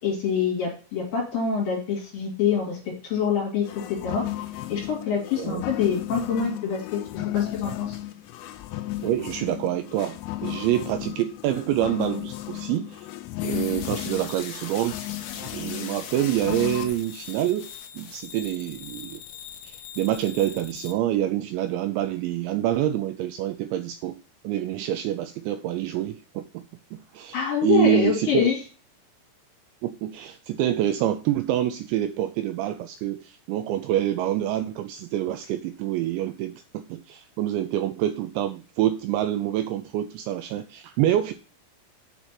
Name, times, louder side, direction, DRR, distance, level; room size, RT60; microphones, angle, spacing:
voice 1, 0.0-3.7 4.0-4.2 4.7-7.0 7.3-8.0 27.3-28.6, left 7 dB, 50° left, -2 dB, 4.3 m, -25 dB
sound 1, 3.6-16.9, left 15 dB, 90° left, 3.3 m, -34 dB
voice 2, 9.0-13.1 13.4-15.0 15.4-17.7 17.9-19.2 19.6-24.2 24.4-26.7 26.9-28.5 29.8-41.3, right 12 dB, 85° right, 9 dB, 2.7 m, -26 dB
sound 2, 13.4-20.9, left 8 dB, 75° left, 2.8 m, -40 dB
8.9 x 4.3 x 5.9 m, 0.36 s
omnidirectional pair, 5.6 m